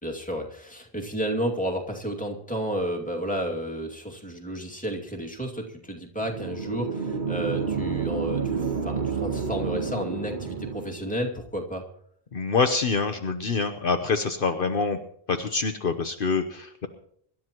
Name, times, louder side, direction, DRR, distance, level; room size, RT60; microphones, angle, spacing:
voice 1, 0.0-11.9, equal, 5° left, 0 dB, 2.3 m, -31 dB
sound 1, 6.2-11.1, right 5 dB, 50° right, 1.4 m, -30 dB
voice 2, 12.3-15.0 15.3-16.9, left 4 dB, 60° left, 6 dB, 1.0 m, -26 dB
25.0 x 12.5 x 3.0 m, 0.65 s
omnidirectional pair, 1.1 m